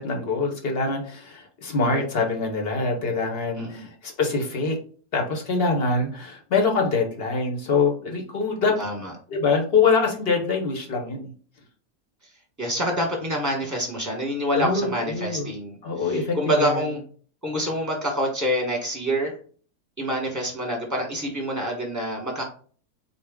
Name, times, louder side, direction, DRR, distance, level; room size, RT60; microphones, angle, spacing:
voice 1, 0.0-4.8 5.1-8.8 9.3-11.3 14.5-15.5 15.8-16.9, left 4 dB, 50° left, 2 dB, 0.9 m, -24 dB
voice 2, 3.6-3.9 8.8-9.1 12.6-15.8 16.0-17.0 17.4-19.3 20.0-22.4, equal, 15° right, -1 dB, 0.9 m, -26 dB
4.0 x 2.4 x 3.4 m, 0.44 s
omnidirectional pair, 1.6 m